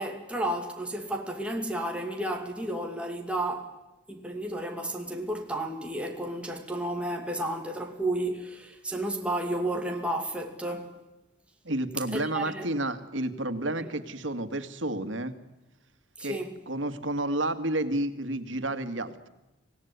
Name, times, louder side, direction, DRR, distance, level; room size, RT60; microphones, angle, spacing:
voice 1, 0.0-3.8 4.1-10.9 12.1-12.7 13.8-13.9 16.2-16.6, right 1 dB, 5° right, 2.4 m, -32 dB
voice 2, 11.6-15.3 16.2-16.4 16.7-19.3, right 1 dB, 90° right, 2.1 m, -30 dB
26.0 x 18.0 x 9.6 m
head